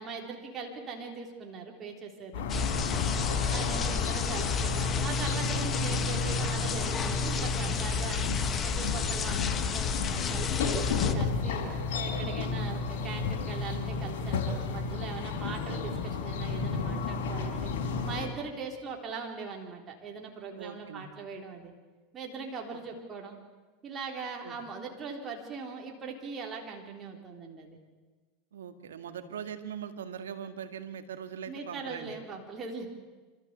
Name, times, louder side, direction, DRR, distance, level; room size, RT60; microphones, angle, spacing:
voice 1, 0.0-2.5 3.5-8.3 8.6-11.6 12.0-17.7 18.0-21.7 22.1-23.4 23.8-27.8 31.5-32.9, right 4 dB, 30° right, 1 dB, 3.7 m, -40 dB
sound 1, 2.3-18.3, left 4 dB, 70° left, 4.3 m, -32 dB
sound 2, 2.5-11.1, left 6 dB, 30° left, 1.4 m, -32 dB
voice 2, 3.2-3.7 20.6-21.1 22.7-22.8 24.4-24.6 28.5-32.1, right 8 dB, 90° right, 8 dB, 1.8 m, -41 dB
27.5 x 14.0 x 8.2 m, 1.3 s
hypercardioid pair, 105°, 0 cm